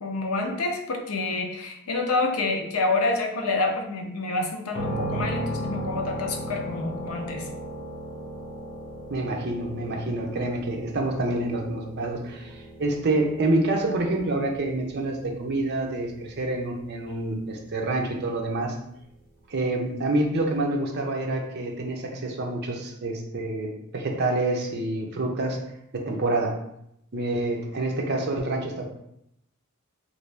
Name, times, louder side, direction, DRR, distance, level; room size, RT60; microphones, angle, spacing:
voice 1, 0.0-7.5, left 3 dB, 90° left, 3 dB, 0.6 m, -28 dB
sound 1, 4.7-18.5, equal, 45° left, 0.7 m, -37 dB
voice 2, 9.1-18.8 19.5-25.6 25.9-26.6 27.1-28.8, right 2 dB, 50° right, 1 dB, 0.6 m, -27 dB
3.0 x 2.7 x 3.3 m, 0.76 s
head